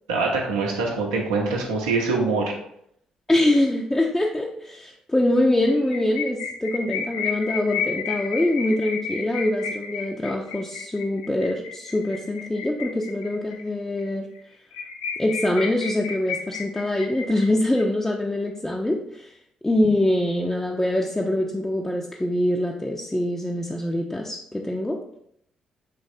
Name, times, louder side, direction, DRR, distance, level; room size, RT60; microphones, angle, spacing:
voice 1, 0.1-2.5, right 3 dB, 75° right, 0 dB, 0.7 m, -24 dB
voice 2, 3.3-14.3 15.2-19.3 19.6-25.0, left 1 dB, 10° left, -1 dB, 0.4 m, -24 dB
sound 1, 5.7-13.6 14.0-14.1 14.4-14.5 14.7-17.8, left 6 dB, 75° left, 0.3 m, -32 dB
3.9 x 3.2 x 2.6 m, 0.72 s
figure-of-eight pair, 40°, 3 cm